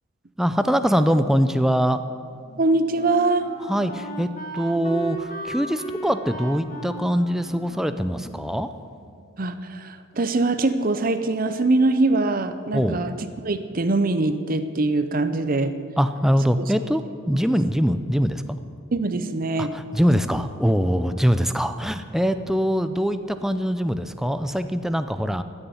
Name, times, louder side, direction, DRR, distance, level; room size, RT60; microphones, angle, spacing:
voice 1, 0.4-2.0 3.7-8.7 12.7-13.0 16.0-18.4 19.6-25.4, equal, ahead, 9 dB, 0.4 m, -23 dB
Wind instrument woodwind instrument, 2.4-9.2, right 1 dB, 40° left, 1.5 m, -37 dB
voice 2, 2.6-3.5 9.4-15.7 16.6-16.7 18.9-19.7, right 2 dB, 45° right, 10 dB, 0.6 m, -23 dB
15.0 x 7.0 x 9.4 m, 2.4 s
head